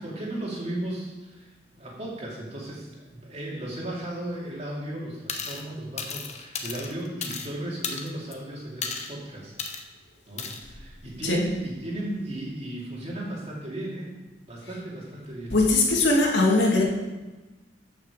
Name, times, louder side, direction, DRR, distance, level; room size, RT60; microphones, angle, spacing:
voice 1, 0.0-9.5 10.3-14.2 14.5-15.5, right 1 dB, 35° right, -3 dB, 2.7 m, -35 dB
sound 1, 5.3-5.6 6.0-7.5 7.8-8.3 8.8-9.1 9.6-9.8 10.4-10.6, left 5 dB, 40° left, 1.0 m, -34 dB
voice 2, 15.5-16.8, left 2 dB, 75° left, -1 dB, 2.2 m, -20 dB
13.5 x 6.2 x 5.0 m, 1.2 s
head